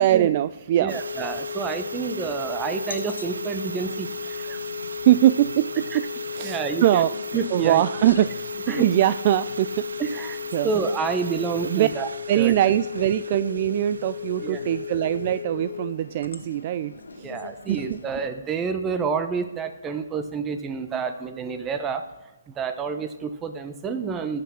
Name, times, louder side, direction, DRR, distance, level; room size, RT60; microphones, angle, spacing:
voice 1, 0.0-1.0 5.1-6.1 6.3-7.1 7.5-9.9 10.5-10.7 11.6-11.9 12.3-17.3 17.7-18.0, right 13 dB, 40° right, 14 dB, 0.3 m, -22 dB
voice 2, 0.8-4.6 5.9-6.0 6.4-7.0 7.3-7.8 8.7-8.9 10.0-10.4 10.6-12.1 12.3-12.5 14.4-14.6 17.2-22.0 22.6-24.4, right 5 dB, 15° right, 8 dB, 0.9 m, -29 dB
sound 1, 0.9-15.9, left 8 dB, 60° left, 0.5 m, -35 dB
sound 2, 0.9-15.4, right 4 dB, 85° right, 0.7 m, -39 dB
sound 3, 1.7-18.3, left 3 dB, 85° left, 1.4 m, -43 dB
16.0 x 5.8 x 6.3 m, 1.1 s
hypercardioid pair, 150°, 0 cm